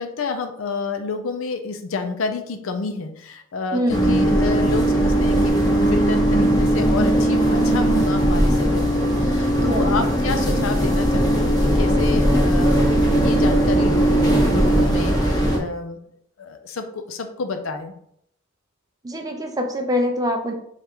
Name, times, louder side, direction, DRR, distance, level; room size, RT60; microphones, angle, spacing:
voice 1, 0.0-16.0 16.4-17.9, left 4 dB, 75° left, 6 dB, 0.5 m, -29 dB
voice 2, 3.7-4.0 9.6-10.0 19.0-20.5, equal, 20° right, 4 dB, 0.5 m, -24 dB
sound 1, 3.9-15.6, right 1 dB, 20° left, 0.8 m, -18 dB
3.3 x 2.4 x 4.4 m, 0.71 s
head